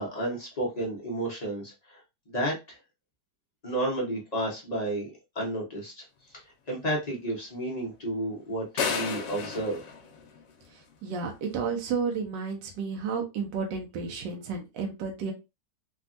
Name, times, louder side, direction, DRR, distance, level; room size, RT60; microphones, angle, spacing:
voice 1, 0.0-2.0 2.3-2.8 3.6-6.0 6.3-9.8, right 1 dB, 40° left, -4 dB, 0.5 m, -32 dB
sound 1, 8.8-10.9, left 5 dB, 65° left, 1.1 m, -32 dB
voice 2, 10.7-15.3, right 5 dB, 75° right, 2 dB, 1.3 m, -32 dB
3.4 x 2.2 x 2.4 m, 0.26 s
omnidirectional pair, 2.0 m